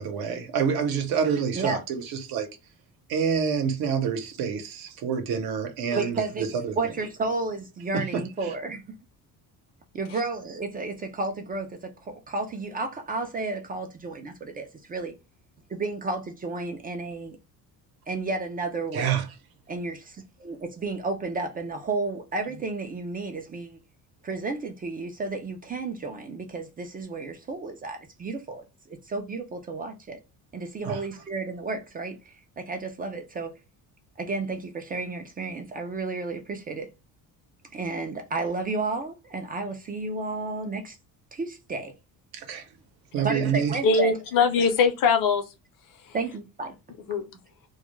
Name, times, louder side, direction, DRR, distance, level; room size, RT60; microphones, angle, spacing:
voice 1, 0.0-2.5 3.1-6.8 7.9-8.2 18.9-19.2 30.8-31.0 42.3-42.6 43.1-43.8, right 7 dB, 70° right, 0.8 m, -27 dB
voice 2, 6.0-6.5 6.8-9.0 9.9-15.1 15.7-17.4 18.1-19.2 19.7-23.8 24.2-30.2 30.5-33.6 34.2-36.9 37.7-41.0 41.3-41.9 43.2-44.2 46.1-46.7, right 3 dB, 25° right, 0.3 m, -32 dB
voice 3, 43.8-45.4 46.1-46.2 47.1-47.3, left 5 dB, 60° left, 0.7 m, -22 dB
2.2 x 2.1 x 3.0 m
cardioid pair, 125°, 37 cm